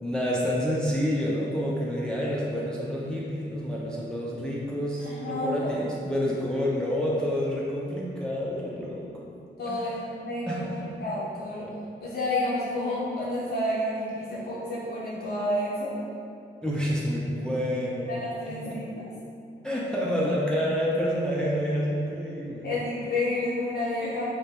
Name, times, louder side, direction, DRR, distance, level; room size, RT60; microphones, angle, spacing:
voice 1, 0.0-9.1 9.7-9.9 10.5-11.0 16.6-18.1 18.5-18.8 19.6-22.7, equal, 5° left, -4 dB, 0.4 m, -28 dB
voice 2, 5.0-5.7 6.6-6.7 9.6-11.7 12.0-16.0 18.1-19.1 22.6-24.2, left 1 dB, 50° left, -8 dB, 0.6 m, -30 dB
2.1 x 2.0 x 2.8 m, 2.5 s
supercardioid pair, 40°, 21 cm